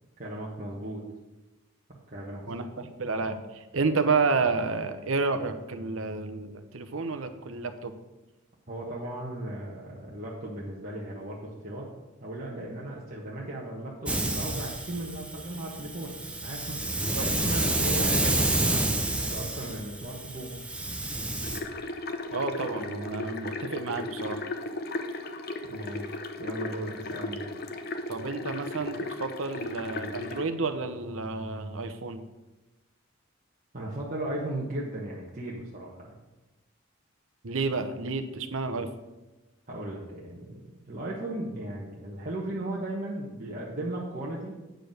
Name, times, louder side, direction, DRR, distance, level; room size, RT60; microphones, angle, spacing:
voice 1, 0.2-1.0 2.1-2.7 8.7-11.9 12.2-16.8 17.2-20.5 25.7-27.5 33.7-36.2 39.7-40.6 40.9-44.6, right 1 dB, 40° right, -5 dB, 1.3 m, -36 dB
voice 2, 2.5-3.4 3.7-7.9 17.0-17.2 22.3-24.4 28.1-32.2 37.4-38.9, right 4 dB, 75° right, 8 dB, 0.8 m, -30 dB
Hiss, 14.1-21.6, right 1 dB, 5° right, 0.6 m, -29 dB
sound 1, 21.4-30.4, left 2 dB, 45° left, 0.7 m, -36 dB
9.1 x 4.9 x 6.5 m, 1.1 s
head